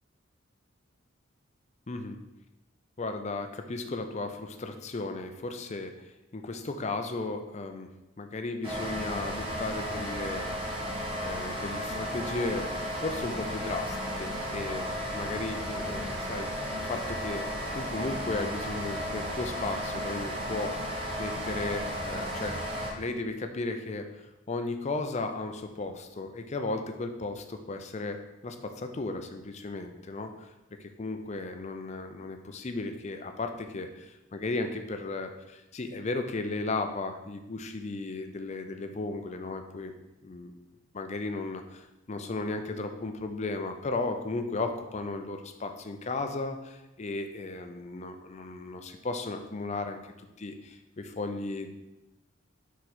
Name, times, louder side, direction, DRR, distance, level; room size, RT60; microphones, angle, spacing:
voice 1, 1.9-2.2 3.0-7.9 8.2-10.7 11.2-12.7 13.0-16.5 16.9-20.9 21.2-22.6 23.0-30.5 30.8-39.9 40.2-40.5 40.9-51.7, left 3 dB, 35° left, 6 dB, 0.5 m, -35 dB
sound 1, 8.6-22.9, equal, 25° right, 1.4 m, -34 dB
5.0 x 4.6 x 4.2 m, 0.96 s
head